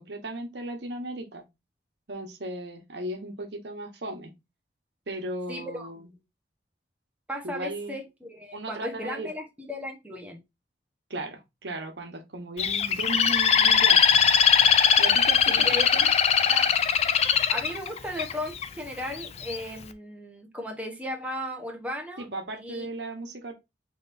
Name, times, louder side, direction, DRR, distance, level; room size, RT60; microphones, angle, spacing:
voice 1, 0.0-1.4 2.1-4.3 5.1-6.1 7.4-7.9 8.5-9.3 11.1-14.2 15.0-16.1 22.2-23.5, right 2 dB, 80° right, 1.1 m, -36 dB
voice 2, 5.5-6.1 7.3-10.4 15.5-16.1 16.5-16.7 17.5-22.3 22.6-22.9, left 1 dB, 10° right, 1.0 m, -36 dB
Bird, 12.6-18.6 19.2-19.6, left 7 dB, 35° left, 0.4 m, -21 dB
5.9 x 3.4 x 2.6 m
head